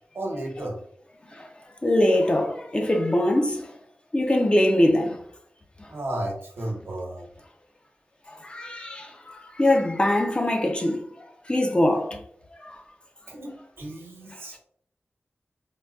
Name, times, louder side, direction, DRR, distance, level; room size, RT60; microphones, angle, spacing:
voice 1, 0.1-0.8 5.9-7.3 13.3-13.5 13.8-14.6, right 1 dB, 85° right, 0.9 m, -33 dB
voice 2, 1.8-3.7 4.1-5.2 8.4-11.0 11.5-12.2 12.6-12.8, left 1 dB, 25° left, 0.5 m, -22 dB
3.8 x 2.2 x 2.3 m
wide cardioid pair, 85°, 4 cm